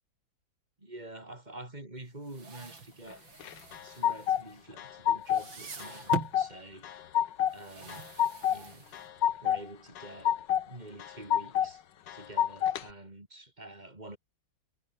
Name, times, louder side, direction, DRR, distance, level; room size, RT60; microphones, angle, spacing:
voice 1, 0.8-3.2 3.8-6.9 7.5-8.1 8.5-9.0 9.4-10.3 10.7-11.8 12.1-14.2, right 1 dB, 20° right, 5.3 m, -47 dB
Miscjdr Car Seatbelt Pull out and recoil, 2.1-4.9 5.2-6.4 7.5-9.4, right 4 dB, 75° right, 4.4 m, -42 dB
sound 1, 3.4-4.4 4.8-5.5 5.8-6.5 6.8-7.5 7.9-8.6 8.9-9.6 10.0-10.6 11.0-11.7 12.1-12.8, left 10 dB, 65° left, 1.7 m, -28 dB
omnidirectional pair, 2.1 m